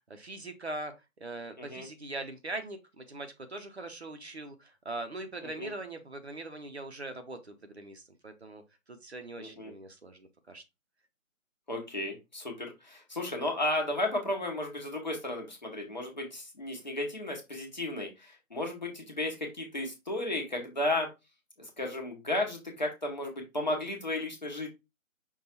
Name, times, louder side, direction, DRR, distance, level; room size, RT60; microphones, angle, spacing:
voice 1, 0.1-8.6 8.9-10.6, right 2 dB, 50° right, 7 dB, 0.7 m, -41 dB
voice 2, 9.4-9.7 11.7-21.1 21.6-24.7, left 1 dB, 30° left, 0 dB, 0.9 m, -34 dB
5.4 x 2.3 x 4.2 m, 0.24 s
figure-of-eight pair, 175°, 42 cm